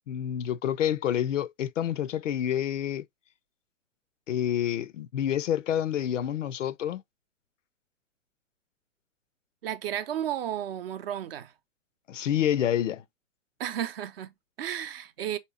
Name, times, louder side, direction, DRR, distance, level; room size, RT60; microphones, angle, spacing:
voice 1, 0.1-3.1 4.3-7.0 12.1-13.0, left 10 dB, 70° left, 0.5 m, -28 dB
voice 2, 9.6-11.5 13.6-15.4, right 10 dB, 45° right, 0.6 m, -33 dB
3.2 x 2.9 x 4.5 m
figure-of-eight pair, 120°, 40 cm